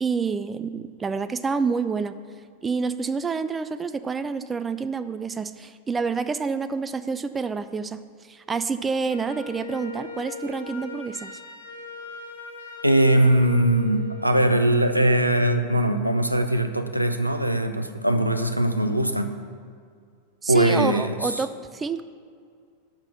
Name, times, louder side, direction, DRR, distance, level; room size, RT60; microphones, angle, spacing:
voice 1, 0.0-2.1 2.6-8.0 8.3-11.3 20.4-22.0, right 5 dB, 15° right, 11 dB, 0.3 m, -28 dB
Wind instrument woodwind instrument, 9.1-15.2, left 3 dB, 70° left, 0.9 m, -40 dB
voice 2, 12.8-19.3 20.5-21.3, right 1 dB, 90° right, 7 dB, 0.5 m, -21 dB
5.9 x 5.8 x 6.4 m, 2.2 s
figure-of-eight pair, 90°, 0 cm